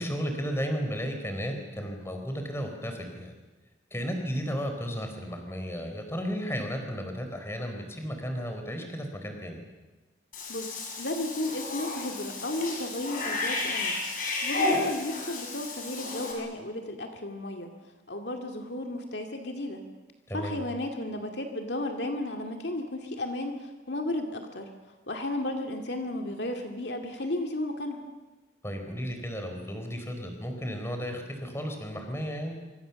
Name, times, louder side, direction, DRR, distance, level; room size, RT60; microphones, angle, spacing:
voice 1, 0.0-3.3 3.9-9.6 20.3-20.6 28.6-32.6, equal, 15° left, 4 dB, 4.2 m, -34 dB
Cat / Bathtub (filling or washing), 10.3-16.3, left 3 dB, 45° left, 6.4 m, -32 dB
voice 2, 10.5-13.9 14.4-17.7 18.1-19.8 20.3-24.7 25.1-28.1, left 1 dB, 60° left, 4 dB, 2.3 m, -33 dB
26.0 x 25.0 x 7.1 m, 1.2 s
head